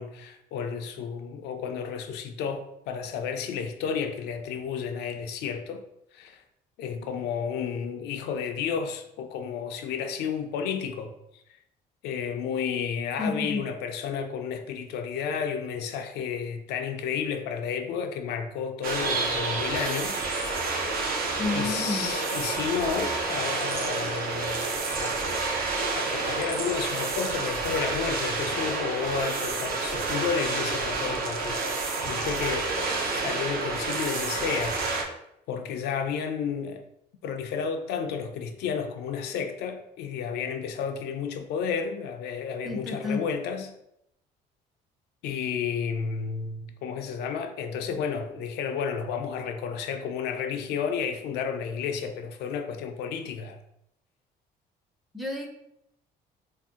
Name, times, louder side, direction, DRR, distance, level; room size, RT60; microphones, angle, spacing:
voice 1, 0.0-5.8 6.1-6.4 6.8-11.2 12.0-20.3 21.1-24.7 25.0-25.2 25.9-34.8 35.5-36.8 37.2-43.7 45.2-53.6, left 6 dB, 75° left, 0.4 m, -32 dB
voice 2, 13.2-13.6 21.4-22.1 42.6-43.2 55.1-55.5, left 3 dB, ahead, 0.4 m, -30 dB
sound 1, 18.8-35.0, right 3 dB, 60° right, 0.6 m, -29 dB
2.6 x 2.1 x 3.5 m
cardioid pair, 110°, 17 cm